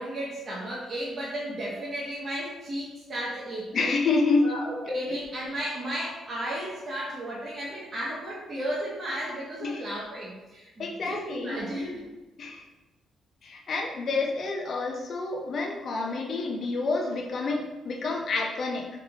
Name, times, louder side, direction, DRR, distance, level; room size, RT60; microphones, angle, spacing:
voice 1, 0.0-4.0 4.4-12.0, equal, 40° right, -8 dB, 1.0 m, -34 dB
voice 2, 3.7-4.5 9.6-9.8 10.8-11.6 12.4-12.6 13.4-18.9, left 3 dB, 55° left, 1 dB, 0.5 m, -28 dB
3.4 x 3.3 x 3.6 m, 1.1 s
cardioid pair, 90°, 0 cm